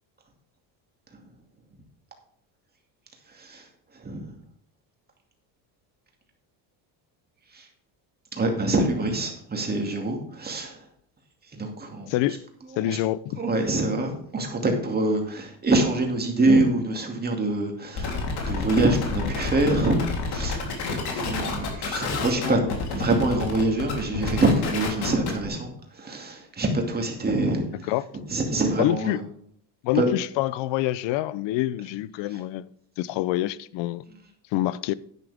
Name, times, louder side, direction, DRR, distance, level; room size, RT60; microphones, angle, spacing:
voice 1, 8.3-10.8 11.5-12.1 12.8-13.0 13.4-18.2 18.4-20.0 20.3-20.6 20.9-22.6 22.9-27.6 28.3-29.2 30.0-30.1, right 2 dB, 20° right, 2.4 m, -25 dB
voice 2, 12.8-13.4 27.9-28.0 28.8-29.2 29.8-32.7 33.0-34.0 34.5-34.9, left 15 dB, 75° left, 0.7 m, -26 dB
sound 1, 18.0-25.5, left 4 dB, 60° left, 3.4 m, -29 dB
10.5 x 9.8 x 3.5 m
cardioid pair, 140°, 43 cm